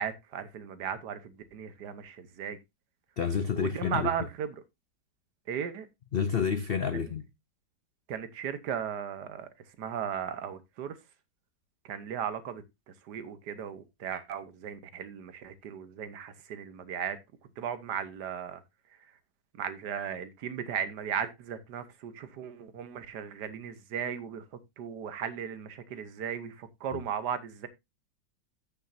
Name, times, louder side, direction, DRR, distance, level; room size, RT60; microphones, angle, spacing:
voice 1, 0.0-2.6 3.5-4.5 5.5-5.9 8.1-9.5 9.8-11.0 11.8-12.6 13.0-17.2 17.6-18.6 19.6-24.4 24.8-27.7, right 8 dB, 70° right, 1.5 m, -36 dB
voice 2, 3.2-4.1 6.1-7.3 26.9-27.0, left 7 dB, 75° left, 0.5 m, -29 dB
14.5 x 6.3 x 2.6 m
omnidirectional pair, 1.9 m